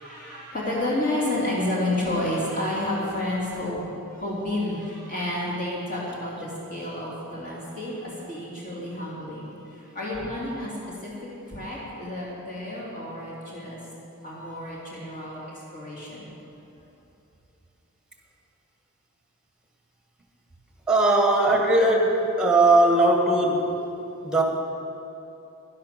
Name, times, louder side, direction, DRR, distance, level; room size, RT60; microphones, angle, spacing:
voice 1, 0.0-10.7 11.0-11.1 11.5-13.8 14.2-16.3, left 1 dB, 40° left, -6 dB, 2.7 m, -30 dB
voice 2, 20.9-23.8 24.2-24.4, right 2 dB, 5° right, 1 dB, 1.5 m, -19 dB
11.5 x 11.0 x 6.7 m, 3.0 s
head